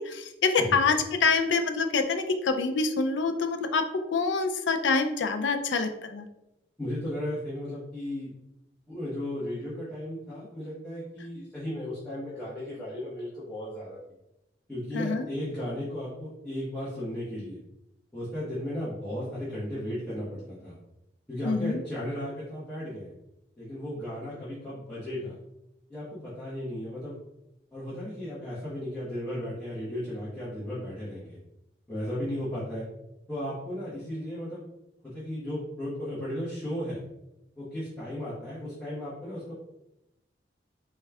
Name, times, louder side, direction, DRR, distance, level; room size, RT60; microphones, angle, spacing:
voice 1, 0.0-3.8 4.1-6.3 14.9-15.3 21.4-21.8, left 4 dB, 85° left, 7 dB, 0.4 m, -26 dB
voice 2, 6.8-8.3 8.9-14.0 14.7-17.6 18.1-20.8 21.3-23.1 23.6-25.4 25.9-27.1 27.7-31.4 31.9-32.8 33.3-34.6 35.0-37.0 37.6-39.5, left 1 dB, 5° left, -12 dB, 1.1 m, -35 dB
4.2 x 2.3 x 3.4 m, 0.89 s
head